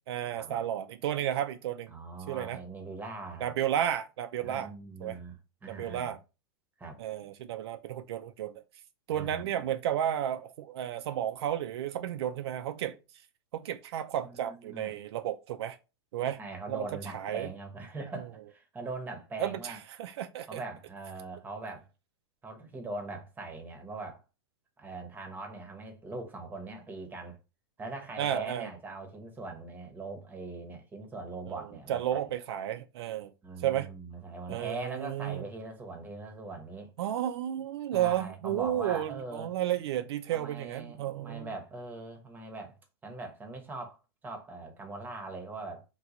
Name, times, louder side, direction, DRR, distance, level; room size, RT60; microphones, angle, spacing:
voice 1, 0.1-1.9 2.3-2.6 3.4-4.7 5.0-5.2 5.7-6.2 7.0-8.5 9.1-13.0 13.5-15.8 16.1-16.4 16.7-17.5 19.4-20.6 28.2-28.7 31.5-31.6 31.9-33.3 33.6-33.9 34.5-35.4 37.0-41.5, right 11 dB, 75° right, 0.4 m, -32 dB
voice 2, 1.9-3.5 4.4-6.1 6.8-7.0 9.1-9.5 14.2-14.9 16.4-19.8 20.5-21.9 22.4-24.2 24.8-27.4 27.8-32.2 33.4-36.9 37.9-39.5 40.3-42.8 43.0-44.0 44.2-45.8, right 3 dB, 15° right, 0.8 m, -41 dB
3.0 x 2.1 x 3.7 m
hypercardioid pair, 130°, 14 cm